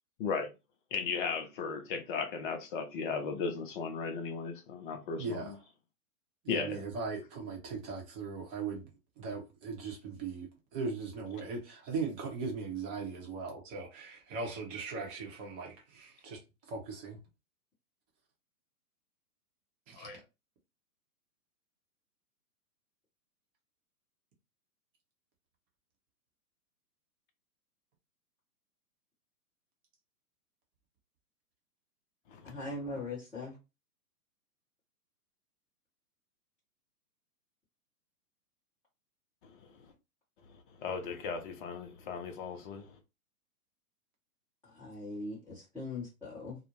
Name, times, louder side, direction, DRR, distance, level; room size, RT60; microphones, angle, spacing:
voice 1, 0.9-5.4 6.5-6.8 20.0-20.2 32.3-32.7 39.4-39.5 40.8-42.9, left 5 dB, 35° left, 0.6 m, -36 dB
voice 2, 5.2-5.6 6.4-8.9 9.2-16.4 16.7-17.2 19.9-20.1 33.0-33.1, right 4 dB, 25° right, 0.7 m, -39 dB
voice 3, 32.4-33.5 44.8-46.6, left 2 dB, 5° left, 0.8 m, -40 dB
2.5 x 2.0 x 2.9 m
hypercardioid pair, 130°, 47 cm